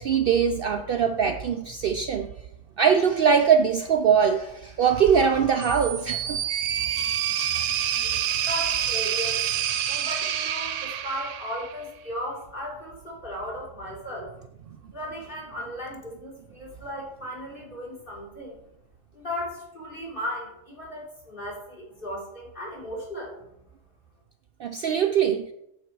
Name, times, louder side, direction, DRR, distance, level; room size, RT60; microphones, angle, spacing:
voice 1, 0.0-2.3 2.8-6.4 8.0-8.2 24.6-25.5, right 7 dB, 60° right, 7 dB, 0.6 m, -22 dB
sound 1, 5.6-11.8, right 10 dB, 80° right, 1.0 m, -27 dB
voice 2, 8.4-9.4 9.9-14.3 14.9-18.6 19.1-23.4, equal, 45° left, -4 dB, 3.7 m, -36 dB
8.8 x 7.2 x 4.6 m, 0.80 s
omnidirectional pair, 1.3 m